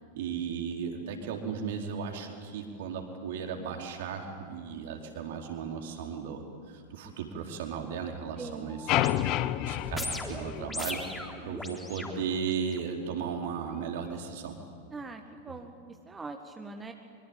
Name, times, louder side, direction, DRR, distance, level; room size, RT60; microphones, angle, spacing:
voice 1, 0.1-9.2 9.6-11.2 11.4-14.6 15.5-15.6, right 6 dB, 55° right, 2 dB, 4.3 m, -36 dB
voice 2, 8.4-8.7 14.9-15.7 16.1-16.9, right 3 dB, 15° right, 5 dB, 1.8 m, -42 dB
sound 1, 8.7-12.8 13.5-13.6, left 2 dB, 10° left, 3.7 m, -39 dB
sound 2, 8.9-11.2, left 13 dB, 40° left, 1.1 m, -29 dB
25.0 x 25.0 x 9.0 m, 2.2 s
figure-of-eight pair, 90°, 0 cm